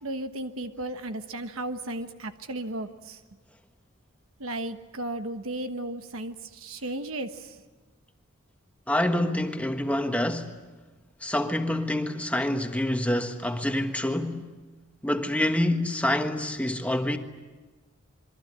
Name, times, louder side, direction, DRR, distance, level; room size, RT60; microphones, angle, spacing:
voice 1, 0.0-3.2 4.4-7.6, right 1 dB, 80° right, 1.2 m, -35 dB
voice 2, 8.9-10.5 11.2-14.5 15.0-17.2, left 1 dB, 5° left, 1.4 m, -27 dB
27.5 x 23.0 x 8.8 m
head